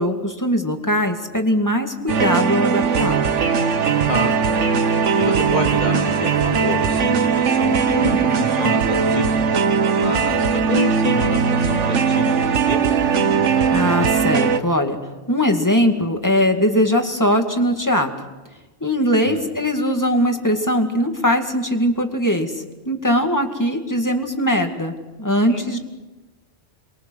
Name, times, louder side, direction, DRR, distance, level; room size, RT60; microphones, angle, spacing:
voice 1, 0.0-3.2 13.7-15.0 15.3-18.1 18.8-25.8, equal, 15° left, 4 dB, 2.1 m, -20 dB
sound 1, 2.1-14.6, right 6 dB, 85° right, 1.4 m, -19 dB
voice 2, 5.2-9.4 9.9-13.0 19.2-19.4 25.4-25.6, left 1 dB, 40° left, 0 dB, 3.6 m, -27 dB
28.5 x 22.5 x 6.4 m, 1.2 s
omnidirectional pair, 1.2 m